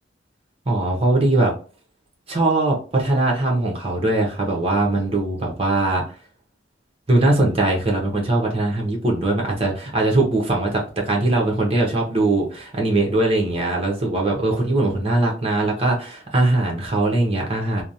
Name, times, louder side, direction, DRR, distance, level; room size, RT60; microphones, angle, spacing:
voice 1, 0.7-1.5 2.3-6.1 7.1-17.8, right 2 dB, 30° right, 0 dB, 0.8 m, -21 dB
3.0 x 2.0 x 2.6 m, 0.38 s
head